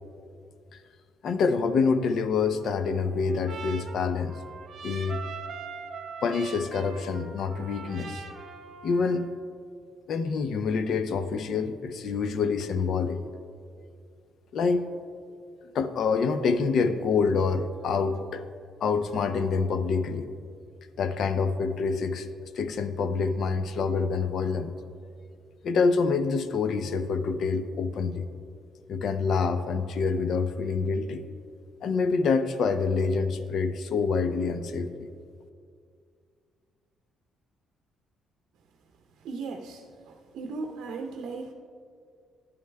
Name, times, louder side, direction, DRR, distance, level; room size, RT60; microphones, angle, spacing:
voice 1, 1.2-4.4 4.8-5.2 6.2-8.2 8.8-9.3 10.1-13.2 14.5-14.9 15.7-18.4 18.8-20.3 21.0-22.3 22.6-24.7 25.6-28.3 28.9-31.2 31.8-35.1, left 5 dB, 65° left, 11 dB, 0.5 m, -26 dB
Trumpet, 2.6-9.4, right 5 dB, 55° right, 1.0 m, -42 dB
voice 2, 39.2-39.8 40.3-41.5, right 4 dB, 75° right, 2 dB, 0.6 m, -36 dB
11.5 x 10.5 x 2.2 m, 2.3 s
cardioid pair, 85°, 0 cm